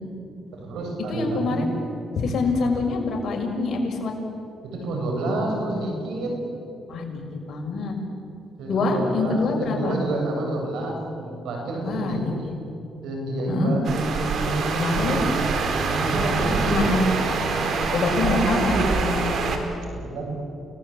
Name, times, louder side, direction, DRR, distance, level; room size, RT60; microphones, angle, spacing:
voice 1, 0.5-1.7 2.6-2.7 4.6-6.4 8.6-12.5 13.0-15.2 15.8-16.8 18.1-18.4 19.9-20.3, right 2 dB, 80° right, 1 dB, 7.6 m, -29 dB
voice 2, 1.1-1.7 2.2-4.1 6.9-7.9 8.7-10.0 11.8-12.5 13.5-13.7 14.8-15.2 16.7-17.1 17.9-19.3, left 3 dB, 55° left, 0 dB, 6.4 m, -25 dB
sound 1, 13.8-19.6, right 4 dB, 65° right, 3.8 m, -25 dB
29.5 x 19.0 x 8.9 m, 2.7 s
cardioid pair, 90°, 0 cm